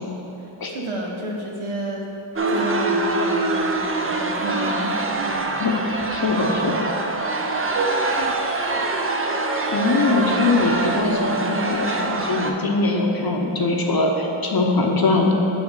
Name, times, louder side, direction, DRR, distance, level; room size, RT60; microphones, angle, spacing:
voice 1, 0.6-2.1 2.5-5.1 5.4-5.6 6.4-6.7 7.7-8.7 9.0-9.1, right 2 dB, 75° right, -1 dB, 1.1 m, -30 dB
sound 1, 2.4-12.5, right 2 dB, 25° right, 0.5 m, -24 dB
voice 2, 5.6-6.9 9.7-15.3, left 3 dB, 45° left, 1 dB, 0.9 m, -22 dB
5.6 x 5.1 x 5.5 m, 2.9 s
wide cardioid pair, 75°, 50 cm